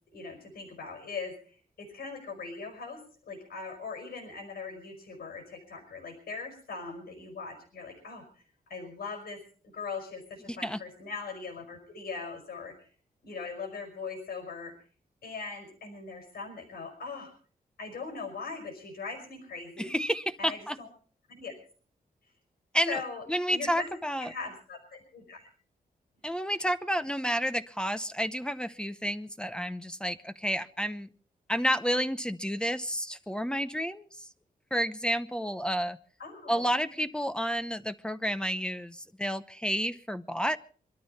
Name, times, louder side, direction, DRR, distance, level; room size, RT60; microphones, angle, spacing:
voice 1, 0.1-8.2 8.7-9.4 9.7-12.9 13.2-14.7 15.2-17.3 17.8-20.0 20.4-20.9 21.3-21.5 22.9-23.9 24.2-25.5 36.2-37.1, left 4 dB, 85° left, 6 dB, 5.3 m, -40 dB
voice 2, 19.9-20.8 22.7-23.0 23.3-24.3 26.2-31.1 31.5-34.1 34.7-36.0 36.5-40.6, equal, 5° left, 11 dB, 0.8 m, -30 dB
24.5 x 13.0 x 4.2 m, 0.43 s
wide cardioid pair, 140°, 15 cm